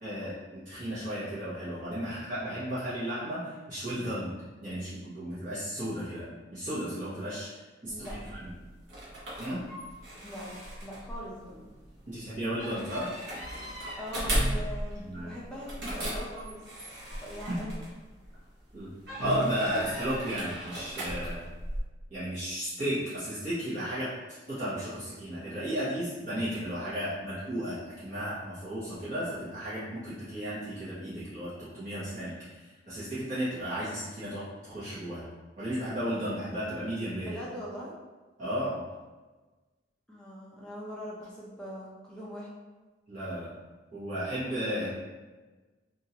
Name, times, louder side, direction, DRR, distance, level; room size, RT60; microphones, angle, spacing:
voice 1, 0.0-4.3 4.6-6.3 6.5-7.5 7.8-8.1 9.4-9.6 12.1-13.1 15.0-15.3 18.7-18.9 19.2-21.4 22.1-24.1 24.5-32.3 32.9-35.2 35.6-37.3 38.4-38.8 43.1-43.5 43.9-44.9, equal, 40° right, -14 dB, 1.1 m, -34 dB
voice 2, 7.9-8.4 10.2-10.5 10.8-11.5 14.0-16.6 17.2-17.8 37.2-37.9 40.1-42.5, equal, 5° left, -6 dB, 0.6 m, -41 dB
sound 1, 7.9-18.4 19.0-21.8, right 1 dB, 65° right, 0.9 m, -36 dB
2.8 x 2.5 x 2.8 m, 1.3 s
head